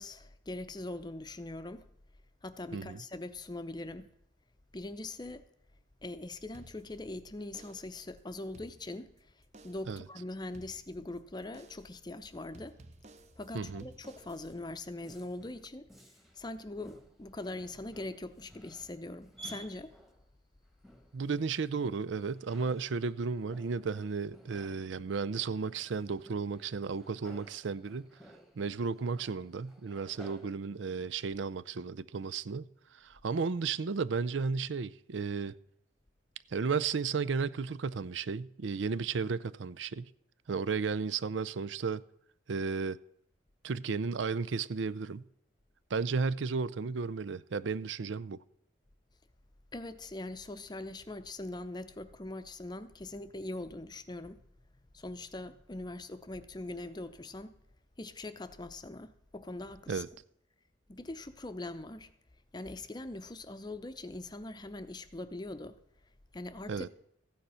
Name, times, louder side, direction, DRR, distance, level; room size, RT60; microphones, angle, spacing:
voice 1, 0.0-1.9 2.4-4.1 4.7-5.4 6.0-9.1 9.6-12.8 13.4-15.8 16.3-19.9 49.7-54.4 54.9-57.5 58.0-60.0 60.9-62.1 62.5-65.8 66.3-66.9, left 2 dB, 20° left, 0.6 m, -42 dB
sound 1, 6.5-7.2 7.5-8.0 8.4-9.2 9.5-10.0 10.5-11.2 11.5-12.0 12.5-14.5, right 2 dB, 35° right, 0.8 m, -56 dB
voice 2, 13.5-13.9 21.1-28.1 28.6-32.7 32.9-35.6 36.5-40.1 40.5-42.0 42.5-43.0 43.6-45.2 45.9-48.4 59.9-60.1 66.7-66.9, right 5 dB, 75° right, 0.5 m, -34 dB
Male speech man speaking, 14.5-16.5 16.8-20.3 20.8-21.3 21.7-30.5, right 2 dB, ahead, 1.3 m, -55 dB
14.5 x 9.4 x 5.6 m
head